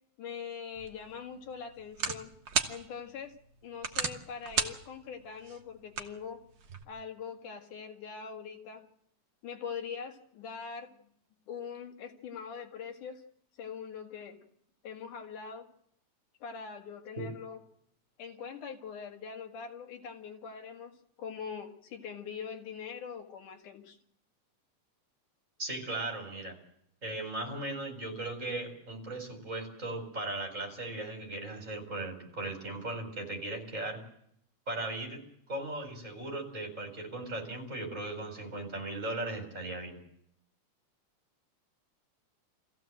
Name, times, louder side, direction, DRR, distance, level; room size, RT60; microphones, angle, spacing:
voice 1, 0.2-2.3 2.7-3.4 3.6-6.4 6.9-8.9 9.4-11.1 11.5-13.2 13.6-14.4 14.8-15.7 16.4-17.6 18.2-24.0, left 6 dB, 85° left, 3 dB, 3.6 m, -42 dB
sound 1, 0.8-6.8, right 6 dB, 50° right, 1.6 m, -37 dB
voice 2, 25.6-26.6 27.0-34.0 34.7-35.2 35.5-40.0, right 2 dB, 25° right, 3 dB, 4.6 m, -37 dB
23.5 x 15.5 x 7.8 m, 0.70 s
omnidirectional pair, 3.5 m